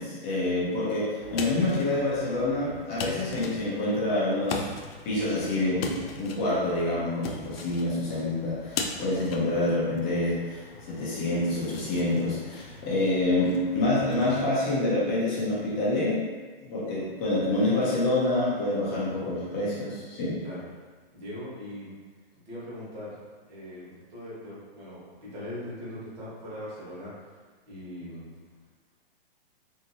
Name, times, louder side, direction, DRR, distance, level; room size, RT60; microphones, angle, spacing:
voice 1, 0.0-4.7 5.0-16.2 16.6-20.4, left 2 dB, 15° left, -8 dB, 0.5 m, -27 dB
sound 1, 1.2-14.4, left 4 dB, 75° left, 0.5 m, -40 dB
voice 2, 21.1-21.9 22.5-23.1 23.5-27.1 27.7-28.3, left 1 dB, 45° right, -8 dB, 1.4 m, -40 dB
2.8 x 2.7 x 2.7 m, 1.4 s
hypercardioid pair, 160°, 30 cm